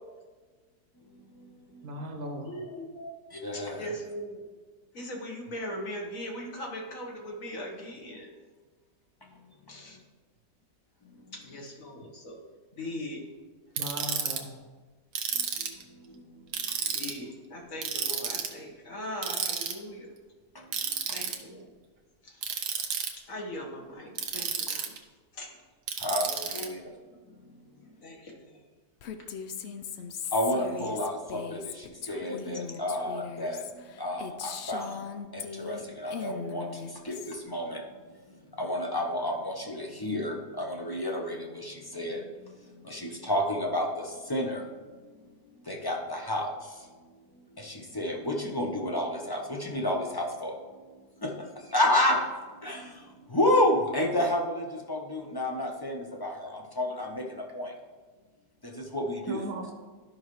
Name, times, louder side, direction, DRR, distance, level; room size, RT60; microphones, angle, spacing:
voice 1, 1.8-2.6 13.8-14.6 59.3-59.7, equal, 70° right, 2 dB, 1.5 m, -37 dB
voice 2, 2.5-3.1 3.5-4.5 4.9-8.3 9.7-10.0 11.3-12.4 12.7-13.2 16.9-20.1 21.1-21.8 22.2-22.7 23.3-24.9 25.3-25.6 26.5-27.1 28.0-28.6, equal, 55° left, 0 dB, 1.7 m, -40 dB
voice 3, 3.3-3.9 15.3-15.7 16.1-16.2 16.8-16.9 20.5-20.6 26.0-26.8 30.3-33.6 34.0-35.1 35.3-37.8 38.6-42.6 42.8-44.7 45.7-46.9 47.6-50.5 51.2-52.3 52.6-57.7 58.6-59.4, left 1 dB, 25° left, 0 dB, 0.5 m, -30 dB
Ratchet pawl, 13.8-14.4 15.1-15.8 16.5-17.1 17.8-18.5 19.2-19.7 20.7-21.4 22.4-23.1 24.2-25.0 25.9-26.7, right 7 dB, 90° right, 1.5 m, -31 dB
Female speech woman speaking, 29.0-35.8 36.1-37.4, left 7 dB, 75° left, 0.6 m, -39 dB
12.5 x 5.6 x 3.1 m, 1.4 s
omnidirectional pair, 1.7 m